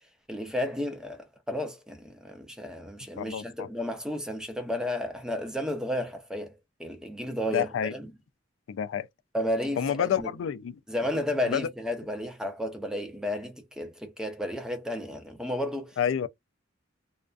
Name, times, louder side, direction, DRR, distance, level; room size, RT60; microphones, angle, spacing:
voice 1, 0.3-8.1 9.3-10.3 10.9-16.0, left 1 dB, 5° right, 0.5 m, -32 dB
voice 2, 3.2-3.7 7.5-7.9 8.7-9.1 9.8-10.8 11.4-11.7 16.0-16.3, left 8 dB, 80° left, 0.3 m, -28 dB
2.4 x 2.3 x 2.3 m
head